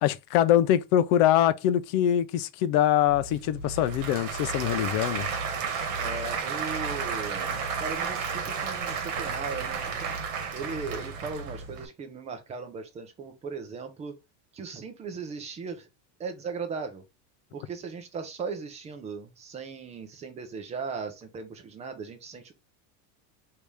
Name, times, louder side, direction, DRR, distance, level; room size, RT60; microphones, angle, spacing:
voice 1, 0.0-5.3, left 11 dB, 50° left, 0.5 m, -23 dB
Applause / Crowd, 3.1-11.9, right 5 dB, 55° right, 1.3 m, -32 dB
voice 2, 6.0-14.1 14.5-15.9 16.2-17.0 17.5-22.5, right 5 dB, 15° right, 0.6 m, -38 dB
3.4 x 2.8 x 4.7 m
cardioid pair, 170°, 46 cm